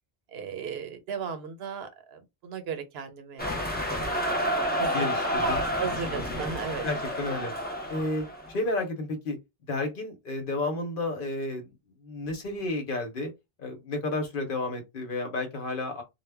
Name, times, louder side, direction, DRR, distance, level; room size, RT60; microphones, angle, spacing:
voice 1, 0.3-3.5 3.8-4.4 4.8-5.2 5.8-6.9, right 6 dB, 80° right, 0.9 m, -36 dB
sound 1, 3.4-8.5, equal, 15° left, 0.4 m, -29 dB
voice 2, 4.9-5.6 6.1-6.4 6.8-7.5 7.9-9.4 9.7-11.7 12.0-13.3 13.6-16.0, left 2 dB, 60° left, 0.9 m, -32 dB
2.1 x 2.0 x 3.3 m
omnidirectional pair, 1.0 m